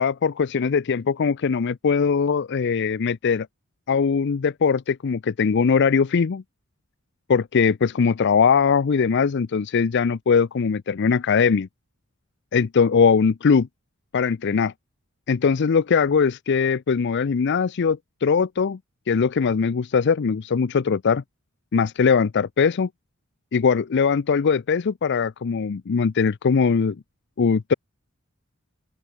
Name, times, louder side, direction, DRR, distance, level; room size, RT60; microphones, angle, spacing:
voice 1, 0.0-3.5 3.9-6.4 7.3-11.7 12.5-13.7 14.1-14.7 15.3-18.8 19.1-21.2 21.7-22.9 23.5-27.0 27.4-27.7, left 5 dB, 55° left, 0.5 m, -21 dB
open air
head